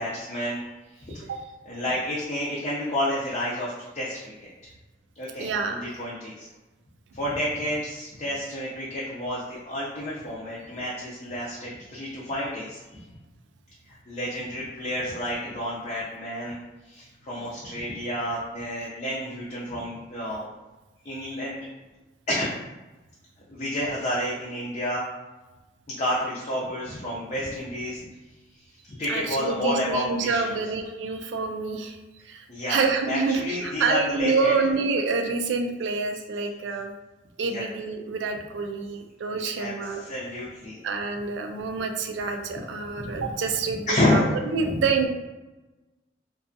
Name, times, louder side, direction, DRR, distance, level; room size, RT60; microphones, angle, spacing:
voice 1, 0.0-1.2 1.6-4.3 5.2-6.5 7.1-13.0 13.9-16.6 16.8-20.5 21.0-21.6 22.3-22.5 23.5-25.0 25.9-28.1 28.5-30.6 32.5-34.6 37.4-37.6 39.3-40.8 43.0-43.2 43.9-44.3 44.6-44.8, left 1 dB, 35° left, -7 dB, 0.4 m, -30 dB
voice 2, 5.4-5.9 29.1-32.0 32.3-36.9 37.4-40.0 40.8-44.2 44.5-45.1, right 4 dB, 85° right, 5 dB, 0.3 m, -27 dB
2.5 x 2.3 x 2.5 m, 1.1 s
head